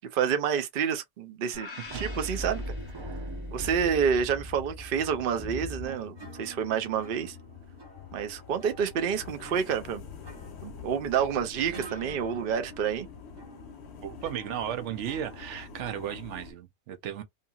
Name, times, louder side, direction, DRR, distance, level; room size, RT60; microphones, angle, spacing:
voice 1, 0.1-2.6 3.5-7.4 8.1-10.0 10.6-13.1, right 7 dB, 55° right, 0.7 m, -28 dB
sound 1, 1.5-3.7, left 4 dB, 40° left, 0.6 m, -46 dB
sound 2, 1.9-16.1, equal, 25° right, 0.8 m, -43 dB
sound 3, 2.6-16.5, left 7 dB, 70° left, 0.9 m, -47 dB
voice 2, 14.0-17.2, right 10 dB, 80° right, 0.9 m, -35 dB
2.7 x 2.7 x 2.3 m
omnidirectional pair, 1.2 m